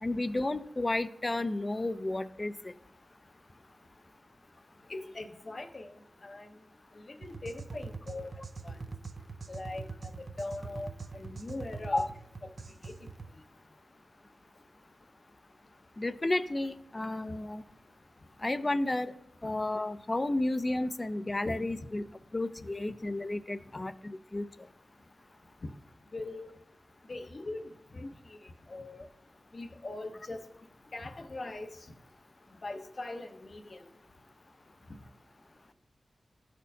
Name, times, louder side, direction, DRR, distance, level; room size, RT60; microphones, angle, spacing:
voice 1, 0.0-2.7 11.9-12.1 16.0-17.6 18.4-19.1 19.4-22.0 22.3-24.4, left 2 dB, 35° left, 13 dB, 0.4 m, -32 dB
voice 2, 4.9-6.0 6.2-6.5 7.2-8.3 8.6-8.7 9.5-12.1 12.4-12.5 12.8-12.9 21.4-21.5 26.1-26.6 27.1-29.1 29.5-30.5 30.9-31.7 32.6-33.8, left 2 dB, 55° left, 6 dB, 0.8 m, -41 dB
sound 1, 7.2-13.3, right 4 dB, 65° right, 0.4 m, -43 dB
13.0 x 4.3 x 2.7 m, 0.77 s
cardioid pair, 50°, 0 cm